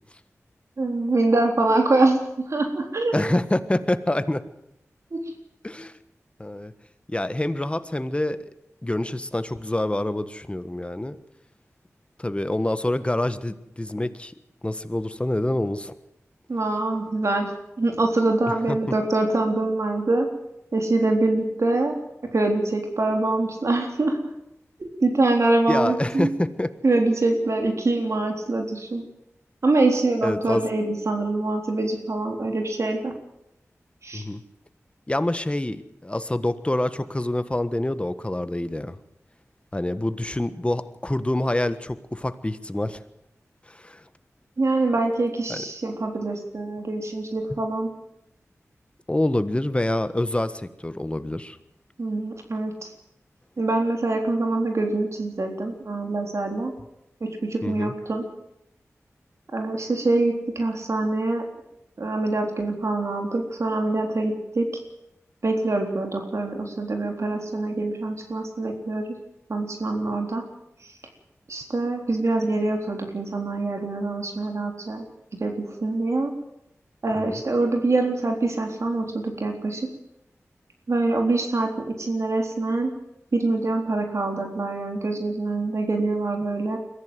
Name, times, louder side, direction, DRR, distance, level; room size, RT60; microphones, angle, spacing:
voice 1, 0.8-3.2 5.1-5.2 16.5-17.5 17.8-20.3 20.7-21.9 22.3-24.2 24.8-26.3 26.8-29.0 29.6-33.1 34.0-34.2 44.6-47.9 52.0-52.9 53.6-56.7 57.2-58.2 59.5-61.4 62.0-64.7 65.4-69.1 69.5-70.4 71.5-75.0 75.4-76.3 77.0-79.9 80.9-82.9 83.3-86.8, right 2 dB, 65° right, 3 dB, 3.8 m, -24 dB
voice 2, 3.1-4.4 5.6-5.9 6.4-6.7 7.1-8.4 8.8-11.2 12.2-14.3 14.6-15.9 18.7-18.8 25.7-26.7 30.2-30.6 34.1-34.4 35.1-39.0 39.7-43.0 43.7-44.0 45.5-45.6 49.1-51.6 57.6-57.9 77.1-77.4, left 1 dB, 20° left, 11 dB, 1.4 m, -26 dB
22.5 x 15.0 x 7.8 m, 0.85 s
cardioid pair, 50°, 5 cm